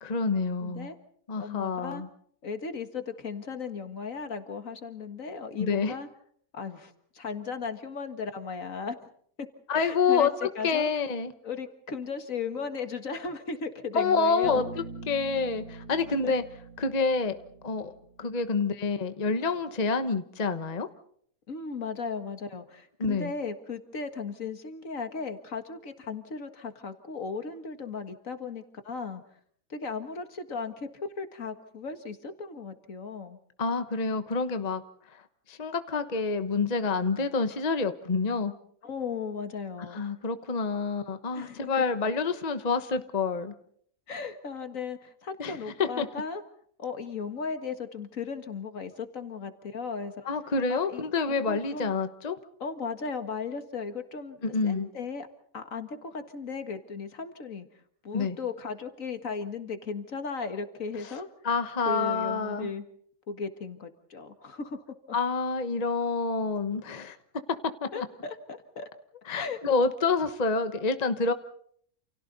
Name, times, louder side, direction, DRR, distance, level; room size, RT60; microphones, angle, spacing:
voice 1, 0.0-0.9 1.3-2.1 5.6-5.9 9.7-11.3 13.9-16.4 16.8-17.3 17.6-17.9 18.2-20.9 23.0-23.3 33.6-34.8 35.5-38.5 39.9-43.5 45.4-46.1 50.2-52.4 54.4-54.9 58.1-58.4 61.4-62.7 65.1-67.2 67.8-68.1 69.3-71.3, left 4 dB, 30° left, 9 dB, 1.2 m, -28 dB
voice 2, 0.6-1.0 1.4-2.0 2.4-6.1 6.5-9.1 9.4-9.5 9.7-10.9 11.4-14.6 16.2-16.3 21.5-29.2 29.7-30.9 31.2-33.4 38.8-40.0 41.3-41.8 44.1-46.4 46.8-50.1 50.7-51.9 52.6-55.3 55.5-57.7 58.0-61.3 61.9-62.8 63.3-64.8 67.9-68.9 69.4-69.6, left 5 dB, 65° left, 8 dB, 2.1 m, -36 dB
Bass guitar, 14.4-18.3, right 3 dB, 75° right, 3.3 m, -43 dB
29.0 x 29.0 x 4.1 m, 0.63 s
omnidirectional pair, 1.5 m